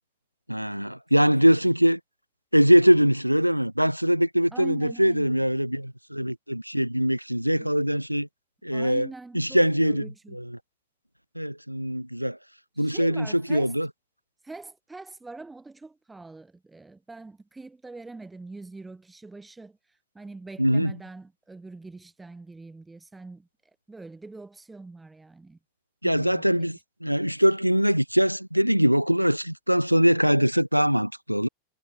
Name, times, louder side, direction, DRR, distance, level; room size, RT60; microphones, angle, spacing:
voice 1, 0.5-2.0 2.5-8.3 8.6-9.1 9.3-10.6 11.4-12.4 12.8-13.9 20.6-20.9 26.0-31.5, equal, 90° right, 0.9 m, -22 dB
voice 2, 4.5-5.4 8.7-10.4 12.7-13.8 14.4-23.5 23.9-25.6 26.0-26.7, right 3 dB, 10° right, 3.4 m, -43 dB
figure-of-eight pair, 90°, 0 cm